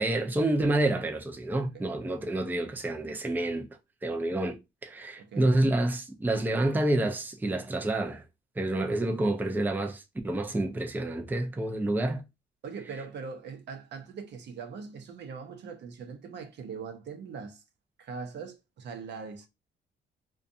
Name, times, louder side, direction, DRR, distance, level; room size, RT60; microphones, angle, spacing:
voice 1, 0.0-3.7 4.0-8.2 8.6-12.2, right 1 dB, 10° right, 0.5 m, -28 dB
voice 2, 5.2-5.6 12.6-17.6 18.0-19.5, right 5 dB, 60° right, 0.6 m, -41 dB
2.5 x 2.3 x 2.5 m
cardioid pair, 90°, 20 cm